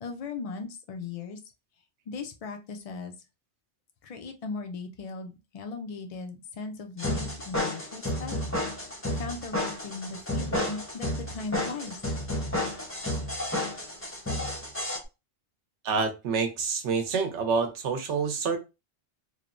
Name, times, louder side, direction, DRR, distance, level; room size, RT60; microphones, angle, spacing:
voice 1, 0.0-1.4 2.1-3.1 4.0-8.3 9.1-12.0, left 4 dB, 75° left, 0.3 m, -38 dB
sound 1, 7.0-15.0, left 1 dB, 15° left, 0.5 m, -31 dB
voice 2, 15.8-18.6, right 5 dB, 75° right, 1.0 m, -27 dB
3.1 x 2.0 x 2.4 m
omnidirectional pair, 1.2 m